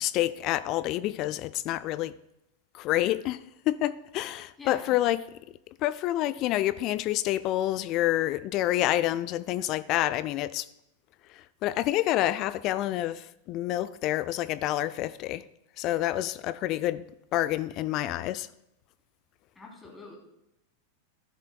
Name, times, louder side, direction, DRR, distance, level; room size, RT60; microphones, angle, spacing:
voice 1, 0.0-2.1 2.7-5.2 5.8-10.7 11.3-15.4 15.8-17.0 17.3-18.5, left 14 dB, 40° left, 0.3 m, -28 dB
voice 2, 4.6-5.0 19.5-20.2, left 3 dB, 15° left, 3.1 m, -45 dB
15.0 x 10.5 x 2.2 m
figure-of-eight pair, 90°, 0 cm